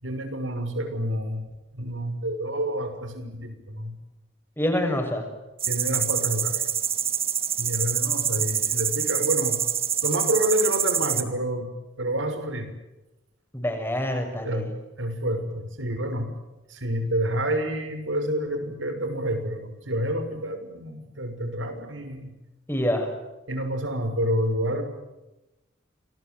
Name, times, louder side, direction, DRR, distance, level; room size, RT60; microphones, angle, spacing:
voice 1, 0.0-1.5 1.7-3.9 5.7-6.6 7.6-9.6 10.0-11.7 12.0-12.7 14.4-14.7 15.0-16.3 16.7-22.3 23.5-24.8, right 1 dB, 90° right, 8 dB, 6.4 m, -28 dB
voice 2, 4.6-5.2 13.5-14.7 22.7-23.1, left 1 dB, 10° left, 4 dB, 6.9 m, -26 dB
sound 1, 5.6-11.2, right 9 dB, 30° right, 2.2 m, -26 dB
28.0 x 22.0 x 9.4 m, 0.98 s
head